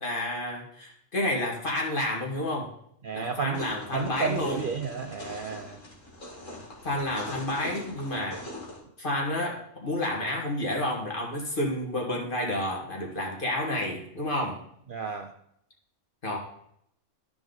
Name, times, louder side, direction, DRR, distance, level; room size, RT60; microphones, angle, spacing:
voice 1, 0.0-2.7 3.1-4.7 6.8-8.4 9.0-14.6 16.2-16.4, left 1 dB, 45° left, -1 dB, 2.0 m, -30 dB
voice 2, 3.0-3.6 3.9-5.8 14.9-15.3, right 5 dB, 55° right, 5 dB, 0.7 m, -32 dB
sound 1, 3.5-8.8, left 1 dB, 90° left, 2.6 m, -42 dB
12.5 x 4.7 x 3.9 m, 0.71 s
omnidirectional pair, 1.3 m